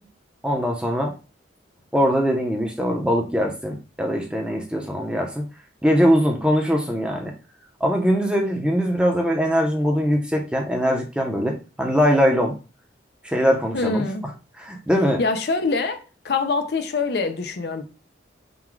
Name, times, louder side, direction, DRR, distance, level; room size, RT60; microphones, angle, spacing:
voice 1, 0.4-1.1 1.9-5.4 5.8-7.3 7.8-12.6 13.2-14.0 14.6-15.2, equal, 5° right, 0.7 m, -21 dB
voice 2, 13.7-14.2 15.2-17.8, left 3 dB, 60° left, 0.5 m, -24 dB
3.9 x 2.3 x 4.5 m
head